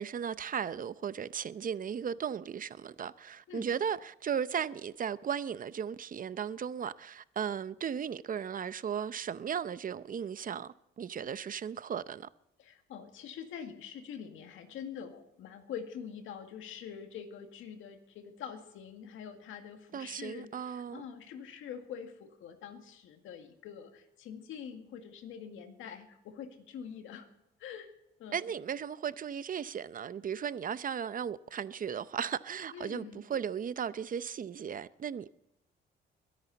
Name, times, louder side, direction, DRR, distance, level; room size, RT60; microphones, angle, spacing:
voice 1, 0.0-12.3 19.9-21.0 28.3-35.3, right 8 dB, 45° right, 0.7 m, -36 dB
voice 2, 12.6-27.3 27.6-27.9 28.2-28.5 32.7-33.2, left 8 dB, 85° left, 2.0 m, -45 dB
22.5 x 10.5 x 4.1 m
cardioid pair, 90°, 20 cm